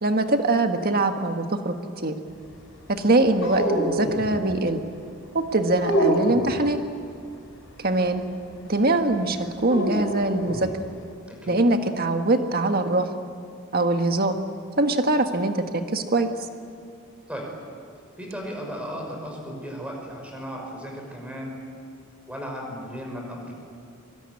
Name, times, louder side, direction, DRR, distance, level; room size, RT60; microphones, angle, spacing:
voice 1, 0.0-1.7 2.0-2.1 2.9-4.8 5.3-6.8 7.8-8.2 8.6-10.7 11.5-13.1 13.7-14.3 14.8-16.3, right 2 dB, 45° right, 6 dB, 1.7 m, -22 dB
sound 1, 3.4-4.4 5.7-6.6 9.6-10.7, equal, 60° left, 6.4 m, -25 dB
voice 2, 11.3-11.6 17.3-17.5 18.2-21.6 22.3-23.5, equal, 5° right, 0 dB, 5.8 m, -35 dB
23.5 x 23.0 x 9.9 m, 2.4 s
head